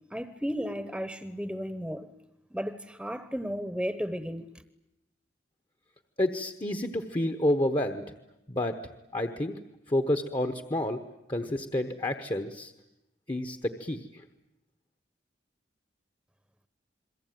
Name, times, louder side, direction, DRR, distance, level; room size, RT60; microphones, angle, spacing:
voice 1, 0.1-2.1 2.5-4.5, equal, 5° right, 1.0 m, -34 dB
voice 2, 6.2-8.0 8.5-8.8 9.1-9.6 9.9-11.0 11.3-12.7 13.3-14.2, left 1 dB, 25° left, 1.1 m, -29 dB
28.5 x 22.5 x 9.3 m
head